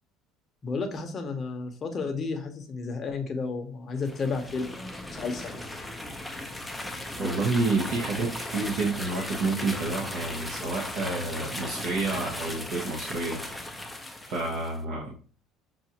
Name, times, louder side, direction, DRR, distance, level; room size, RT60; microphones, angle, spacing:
voice 1, 0.6-5.7, left 4 dB, 30° left, 4 dB, 0.8 m, -32 dB
sound 1, 4.0-14.8, left 1 dB, 5° left, 0.5 m, -37 dB
voice 2, 7.2-13.4 14.3-15.1, right 3 dB, 60° right, -3 dB, 0.9 m, -29 dB
5.6 x 2.5 x 2.8 m, 0.41 s
cardioid pair, 145°, 0 cm